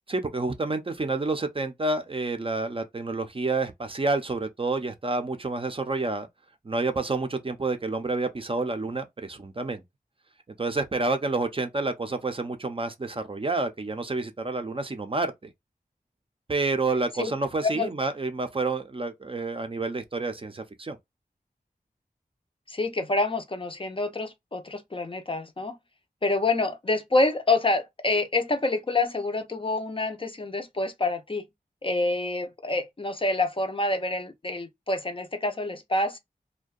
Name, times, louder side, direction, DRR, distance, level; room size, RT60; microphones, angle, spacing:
voice 1, 0.1-6.3 6.6-9.8 10.6-15.5 16.5-21.0, right 3 dB, 35° right, 0.5 m, -29 dB
voice 2, 22.7-25.8 26.2-31.4 31.8-36.2, left 2 dB, 35° left, 0.4 m, -27 dB
2.6 x 2.2 x 2.3 m
wide cardioid pair, 70°, 16 cm